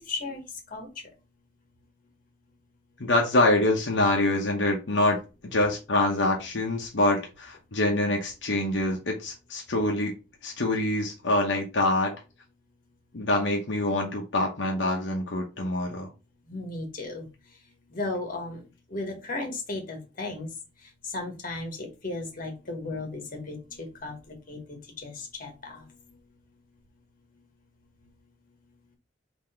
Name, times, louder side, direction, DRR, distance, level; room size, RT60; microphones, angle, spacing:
voice 1, 0.1-0.4 0.7-0.9 16.5-17.3 17.9-18.6 18.9-20.5 21.1-23.6 24.0-24.1 24.5-25.1 25.4-25.8, left 2 dB, 45° left, 3 dB, 1.4 m, -34 dB
voice 2, 3.0-5.2 5.4-10.1 10.4-12.1 13.1-16.1, left 2 dB, 70° left, 0 dB, 0.9 m, -25 dB
3.8 x 3.0 x 4.4 m, 0.30 s
head